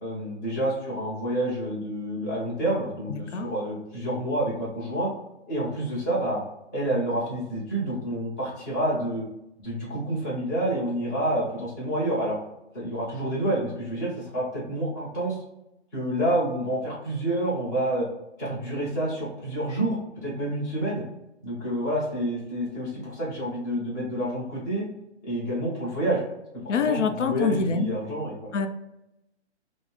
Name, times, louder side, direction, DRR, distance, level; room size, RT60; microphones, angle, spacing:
voice 1, 0.0-5.1 5.5-6.4 6.7-9.3 9.6-12.4 12.7-15.4 15.9-18.1 18.4-21.0 21.4-24.9 25.2-26.2 26.8-28.5, right 1 dB, 15° left, -6 dB, 0.7 m, -28 dB
voice 2, 3.1-3.5 26.7-27.9 28.5-28.7, left 5 dB, 90° left, 7 dB, 0.5 m, -25 dB
3.8 x 2.0 x 3.0 m, 0.89 s
hypercardioid pair, 160°, 35 cm